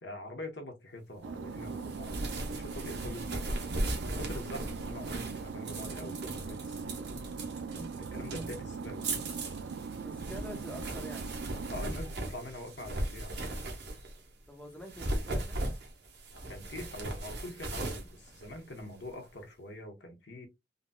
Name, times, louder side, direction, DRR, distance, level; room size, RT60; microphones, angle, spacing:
voice 1, 0.0-2.1 2.5-3.4 4.0-6.9 7.9-9.4 11.7-13.4 16.3-20.5, left 1 dB, 65° left, 1.0 m, -44 dB
sound 1, 1.2-11.9, right 4 dB, 90° right, 0.3 m, -40 dB
sound 2, 1.6-14.2 14.8-19.1, right 1 dB, 60° right, 1.0 m, -38 dB
voice 2, 10.0-11.3 14.5-15.6, equal, 5° left, 0.9 m, -46 dB
3.9 x 2.2 x 2.2 m
head